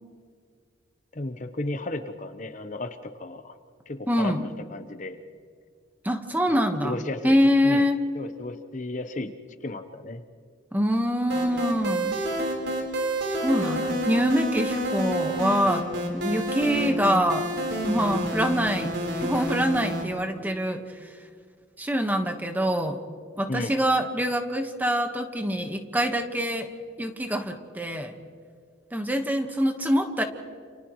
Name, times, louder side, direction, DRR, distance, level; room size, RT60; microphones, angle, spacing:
voice 1, 1.1-3.6 3.9-5.2 6.5-7.9 8.1-9.3 9.6-10.2 23.5-23.8, left 2 dB, 40° left, 8 dB, 1.0 m, -34 dB
voice 2, 4.1-4.4 6.0-7.0 7.2-8.0 10.7-12.1 13.4-17.4 17.8-18.9 19.2-20.8 21.8-23.0 23.4-26.7 27.0-28.1 28.9-30.2, equal, 10° right, 5 dB, 1.3 m, -25 dB
sound 1, 11.3-20.0, equal, 85° right, 4.1 m, -29 dB
29.5 x 28.5 x 3.2 m, 2.2 s
head